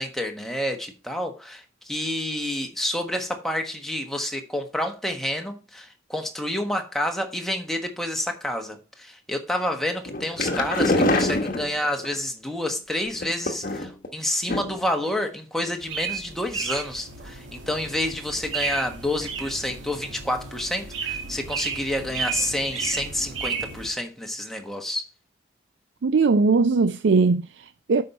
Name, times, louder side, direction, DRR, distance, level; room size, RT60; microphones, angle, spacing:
voice 1, 0.0-25.1, left 1 dB, ahead, 1.2 m, -29 dB
sound 1, 10.1-12.2 13.1-14.1 14.5-14.9 15.2-15.3 15.6-15.7, left 2 dB, 45° left, 1.1 m, -25 dB
sound 2, 15.8-23.9, right 5 dB, 85° right, 2.2 m, -33 dB
voice 2, 26.0-28.0, right 4 dB, 70° right, 0.4 m, -20 dB
8.6 x 5.7 x 4.2 m
head